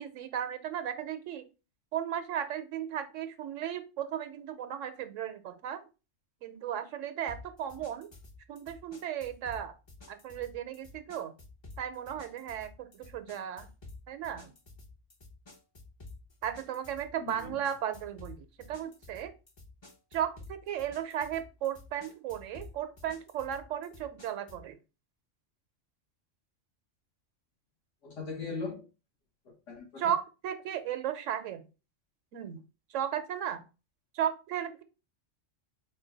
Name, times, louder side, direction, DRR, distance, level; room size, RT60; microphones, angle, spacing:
voice 1, 0.0-1.5 1.9-5.9 6.4-8.1 8.5-9.7 10.1-11.3 11.8-13.7 14.1-14.5 16.4-19.3 20.1-24.8 30.0-31.7 32.3-32.6 32.9-33.6 34.1-34.8, right 10 dB, 80° right, 0.9 m, -35 dB
sound 1, 7.3-24.7, left 3 dB, 30° left, 0.5 m, -52 dB
voice 2, 17.2-17.6 28.0-28.9 29.4-30.1, left 4 dB, 75° left, 1.5 m, -39 dB
4.3 x 2.2 x 3.8 m
omnidirectional pair, 1.3 m